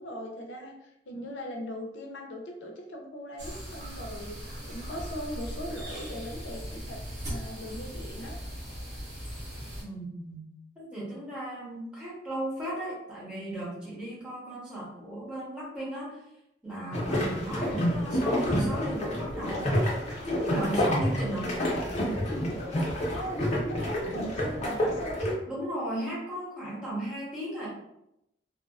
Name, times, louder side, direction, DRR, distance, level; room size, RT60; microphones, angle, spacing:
voice 1, 0.0-7.0 7.3-8.4 23.1-25.4, equal, 85° left, 2 dB, 0.4 m, -39 dB
sound 1, 3.4-9.8, equal, 65° right, 0.9 m, -39 dB
voice 2, 9.8-10.4 10.8-16.2 16.6-19.8 20.2-21.6 25.5-27.7, right 1 dB, 5° right, -7 dB, 0.9 m, -35 dB
sound 2, 16.9-25.3, equal, 40° left, 0.6 m, -29 dB
2.6 x 2.2 x 2.3 m, 0.83 s
head